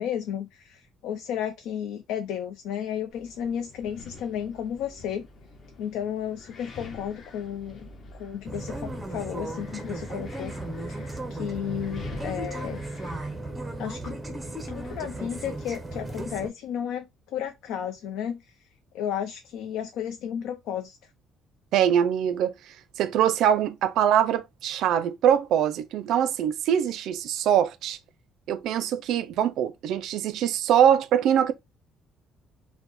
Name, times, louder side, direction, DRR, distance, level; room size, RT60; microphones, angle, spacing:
voice 1, 0.0-5.3 5.8-10.6 10.9-12.8 13.8-14.2 14.7-18.6 18.9-21.0, left 9 dB, 85° left, 0.5 m, -33 dB
Wind, 3.1-15.7, left 3 dB, 30° left, 0.7 m, -47 dB
sound 1, 8.5-16.5, right 1 dB, 5° right, 0.6 m, -35 dB
voice 2, 21.7-22.5 23.0-28.0 28.5-31.5, right 9 dB, 60° right, 0.4 m, -23 dB
4.6 x 2.1 x 3.9 m
cardioid pair, 180°, 0 cm